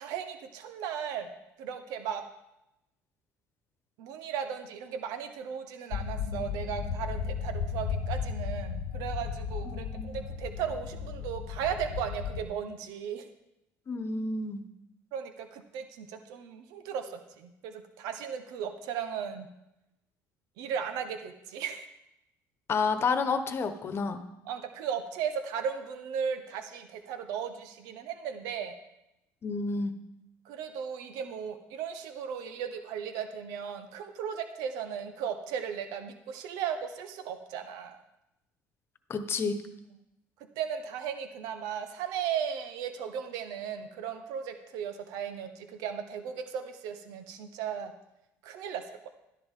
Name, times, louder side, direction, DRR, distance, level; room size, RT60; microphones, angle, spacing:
voice 1, 0.0-1.3 1.6-2.2 4.0-13.3 15.1-19.5 20.6-21.9 24.5-28.7 30.4-38.0 40.6-47.9 48.4-49.1, right 8 dB, 80° right, 7 dB, 1.1 m, -36 dB
sound 1, 5.9-12.4, left 6 dB, 85° left, 0.9 m, -35 dB
voice 2, 9.7-10.2 13.9-14.6 22.7-24.2 29.4-29.9 39.1-39.6, left 4 dB, 40° left, 9 dB, 1.2 m, -30 dB
12.5 x 10.5 x 3.8 m, 0.88 s
supercardioid pair, 90°, 6 cm